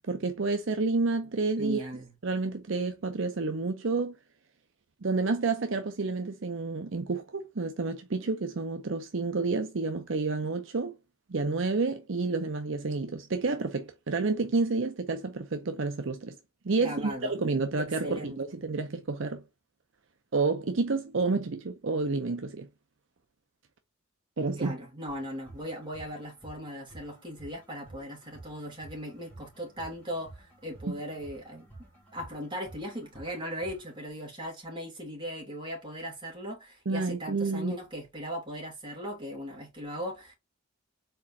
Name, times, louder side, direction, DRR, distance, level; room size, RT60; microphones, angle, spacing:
voice 1, 0.1-1.9 2.2-4.1 5.0-10.9 11.3-16.3 16.6-19.4 20.3-22.7 24.4-24.8 30.9-31.0 36.9-37.8, right 3 dB, 60° right, 0.6 m, -29 dB
voice 2, 1.6-2.1 16.8-17.3 17.8-18.4 24.6-31.7 32.1-40.3, equal, 20° right, 2.9 m, -38 dB
sound 1, 25.1-34.1, right 2 dB, 5° left, 2.9 m, -52 dB
4.5 x 4.2 x 2.7 m
head